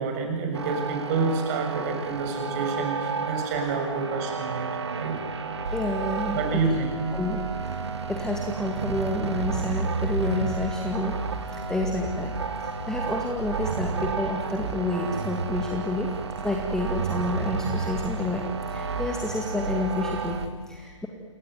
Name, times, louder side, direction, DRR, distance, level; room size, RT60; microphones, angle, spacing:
voice 1, 0.0-4.7 5.0-5.2 6.3-6.9, right 4 dB, 30° right, 4 dB, 6.7 m, -28 dB
sound 1, 0.5-20.5, right 4 dB, 60° right, 2.6 m, -31 dB
voice 2, 5.7-6.6 7.1-7.4 8.1-11.1 11.7-12.3 12.9-16.1 16.4-20.4 20.7-21.1, left 2 dB, 5° left, 0 dB, 2.2 m, -29 dB
28.5 x 22.0 x 9.3 m, 1.6 s
figure-of-eight pair, 130°, 16 cm